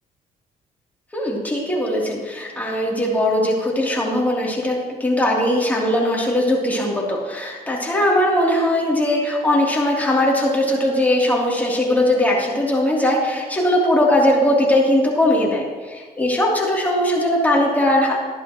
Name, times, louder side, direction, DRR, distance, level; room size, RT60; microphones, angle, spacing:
voice 1, 1.1-18.2, left 1 dB, 10° left, -4 dB, 3.1 m, -19 dB
12.0 x 11.0 x 3.1 m, 1.5 s
cardioid pair, 75°, 17 cm